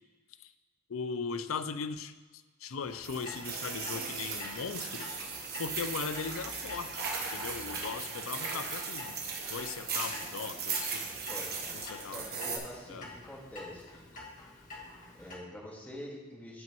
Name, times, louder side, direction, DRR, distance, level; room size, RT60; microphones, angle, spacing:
voice 1, 0.9-5.1 5.6-9.2 9.5-11.0 11.7-12.2 12.9-13.1, left 5 dB, 90° left, 11 dB, 0.5 m, -39 dB
Clock, 2.8-15.4, left 2 dB, 40° left, 1.9 m, -48 dB
Vegetarian restaurant kitchen, 3.0-12.6, right 5 dB, 50° right, 1.3 m, -37 dB
voice 2, 10.9-14.1 15.1-16.6, left 1 dB, 10° left, -3 dB, 1.9 m, -46 dB
14.0 x 5.9 x 3.0 m, 1.3 s
head